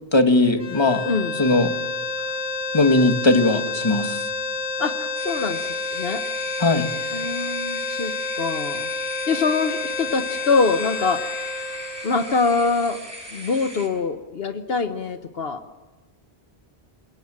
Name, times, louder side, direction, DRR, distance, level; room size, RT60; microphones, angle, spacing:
voice 1, 0.1-1.0 1.4-1.7 2.7-4.2 6.6-6.9, left 2 dB, 25° left, 6 dB, 1.7 m, -18 dB
sound 1, 0.6-12.8, left 3 dB, 5° right, 2.3 m, -29 dB
voice 2, 1.1-1.4 4.8-6.2 7.1-8.9 9.3-11.3 12.0-13.0 13.3-15.6, left 4 dB, 65° left, 8 dB, 1.2 m, -24 dB
sound 2, 5.1-13.9, equal, 20° right, 6.5 m, -38 dB
27.5 x 18.5 x 7.5 m, 1.2 s
omnidirectional pair, 1.1 m